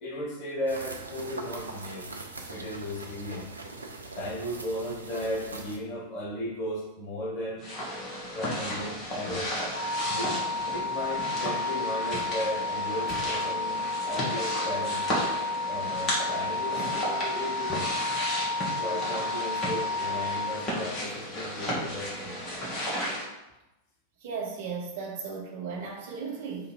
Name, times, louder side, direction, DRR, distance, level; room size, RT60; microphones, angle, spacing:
voice 1, 0.0-2.1 2.5-3.5 4.2-7.6 8.3-9.5 10.1-10.4 10.7-13.8 14.1-15.2 15.7-17.9 18.8-22.4, left 1 dB, 45° left, -2 dB, 1.2 m, -35 dB
sound 1, 0.7-5.8, right 2 dB, 80° right, 0.4 m, -41 dB
sound 2, 7.6-23.2, equal, 25° left, 1.4 m, -34 dB
sound 3, 9.7-20.5, left 2 dB, 80° left, 1.1 m, -32 dB
voice 2, 24.2-26.7, right 5 dB, 55° right, 0 dB, 0.9 m, -36 dB
3.5 x 2.6 x 4.5 m, 0.95 s
figure-of-eight pair, 90°, 0 cm